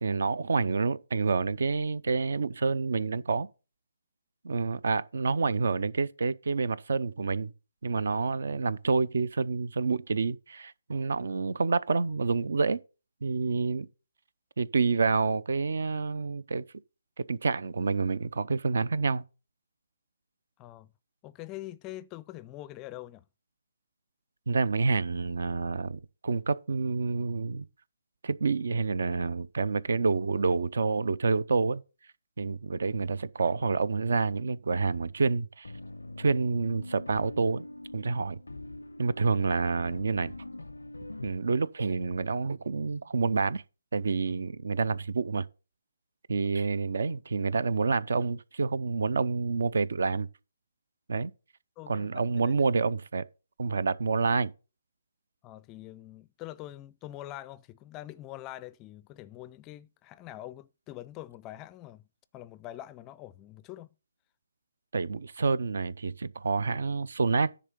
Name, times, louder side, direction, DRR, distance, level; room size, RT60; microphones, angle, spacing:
voice 1, 0.0-3.5 4.4-7.5 7.8-12.8 13.2-13.9 14.6-16.6 17.2-19.2 24.5-27.7 28.2-31.8 32.4-35.7 36.2-37.7 37.9-38.4 39.0-40.4 41.2-43.6 43.9-45.5 46.3-50.3 51.1-51.3 51.9-53.2 53.6-54.5 64.9-67.6, right 4 dB, 65° right, 0.5 m, -28 dB
voice 2, 20.6-20.9 21.2-23.3 51.8-52.5 55.4-62.1 62.3-64.0, left 15 dB, 20° left, 0.4 m, -44 dB
sound 1, 35.6-41.3, left 2 dB, 85° left, 0.5 m, -44 dB
10.0 x 3.8 x 6.7 m
figure-of-eight pair, 145°, 0 cm